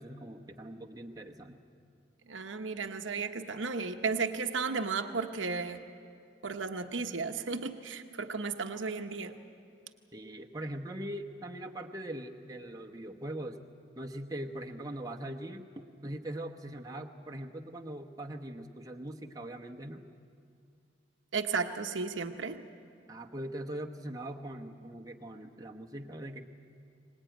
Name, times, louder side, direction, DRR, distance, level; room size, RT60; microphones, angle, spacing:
voice 1, 0.0-1.6 10.1-13.6 14.0-20.0 23.1-26.5, right 1 dB, 20° right, 2 dB, 1.0 m, -41 dB
voice 2, 2.3-5.8 6.4-9.4 21.3-22.6, right 4 dB, 85° right, 6 dB, 1.0 m, -34 dB
24.0 x 19.5 x 9.1 m, 2.4 s
head